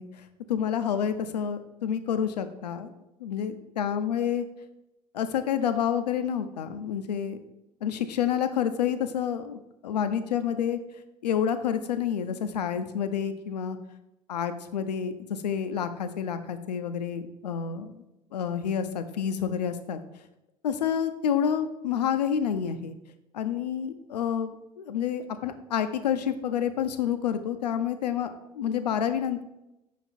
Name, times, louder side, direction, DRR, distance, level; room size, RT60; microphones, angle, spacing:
voice 1, 0.0-2.9 3.2-4.4 5.1-7.4 7.8-10.8 11.2-13.8 14.3-17.9 18.3-20.0 20.6-23.0 23.3-28.3 28.5-29.4, left 8 dB, 75° left, 10 dB, 0.4 m, -29 dB
5.8 x 4.1 x 4.2 m, 0.92 s
figure-of-eight pair, 65°, 21 cm